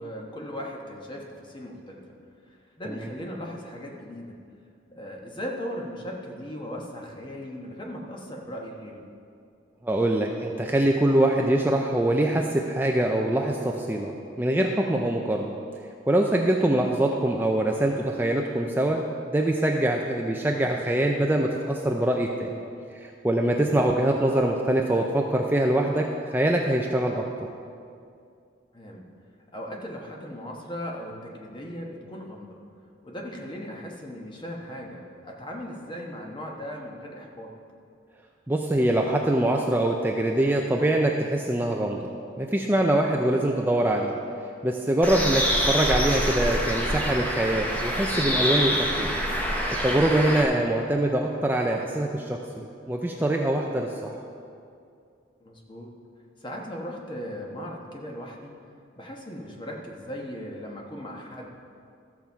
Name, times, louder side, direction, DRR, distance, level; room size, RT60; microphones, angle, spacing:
voice 1, 0.0-2.0 2.5-4.4 4.9-9.0 28.7-29.1 29.5-32.6 33.0-37.5 55.4-55.9 56.4-58.5 59.0-61.5, equal, 25° left, 0 dB, 1.2 m, -38 dB
voice 2, 9.8-15.6 16.1-19.0 19.3-22.5 22.9-26.1 26.3-27.2 38.5-42.1 42.4-44.2 44.6-49.2 49.8-54.2, right 1 dB, 10° right, 1 dB, 0.5 m, -24 dB
Bird, 45.0-50.4, equal, 10° left, 1.0 m, -26 dB
13.5 x 7.2 x 4.6 m, 2.4 s
head